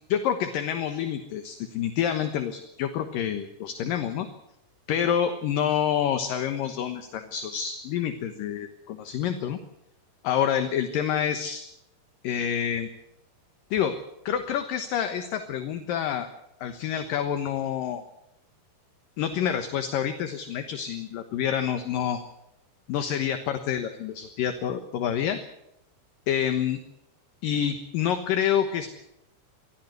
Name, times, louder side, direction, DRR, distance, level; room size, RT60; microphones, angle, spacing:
voice 1, 0.1-4.3 4.9-9.6 10.2-11.6 12.2-12.9 13.7-14.0 14.3-16.3 16.6-18.0 19.2-22.2 22.9-25.4 26.3-26.8 27.4-28.9, left 9 dB, 65° left, 8 dB, 2.6 m, -27 dB
24.5 x 16.5 x 8.0 m, 0.83 s
omnidirectional pair, 4.8 m